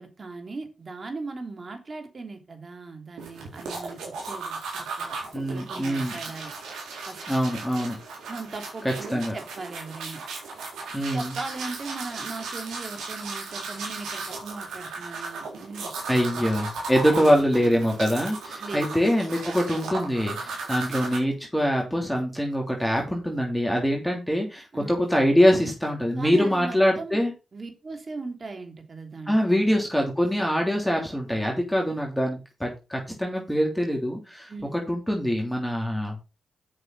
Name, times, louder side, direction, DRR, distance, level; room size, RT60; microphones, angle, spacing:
voice 1, 0.0-5.1 5.5-6.5 7.0-7.2 8.3-10.2 11.1-16.4 16.9-17.3 18.6-19.0 24.7-25.0 26.2-27.2 27.5-29.7 34.5-34.8, right 3 dB, 45° right, 5 dB, 3.1 m, -38 dB
sound 1, 3.2-21.2, right 4 dB, 85° right, 3.8 m, -36 dB
voice 2, 5.3-6.1 7.3-8.0 9.1-9.4 10.9-11.3 16.1-27.3 29.3-36.2, equal, 5° left, 0 dB, 3.1 m, -24 dB
8.2 x 6.6 x 5.4 m, 0.29 s
supercardioid pair, 45°, 0 cm